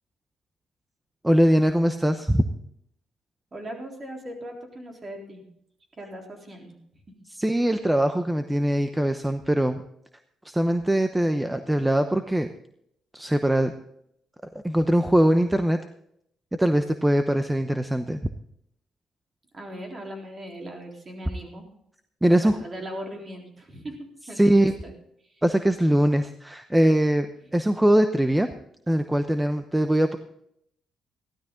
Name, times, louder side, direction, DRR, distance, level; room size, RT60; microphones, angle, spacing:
voice 1, 1.2-2.4 7.3-9.8 10.5-12.5 13.1-13.7 14.6-15.8 16.6-18.2 22.2-22.6 24.4-24.7 25.4-27.3 27.5-28.5 28.9-30.2, right 1 dB, 10° right, 8 dB, 0.8 m, -21 dB
voice 2, 3.5-5.4 6.0-6.7 19.5-21.6 22.3-24.5 24.8-24.9, equal, 35° right, 1 dB, 3.8 m, -39 dB
15.5 x 12.5 x 3.8 m, 0.72 s
cardioid pair, 90°, 0 cm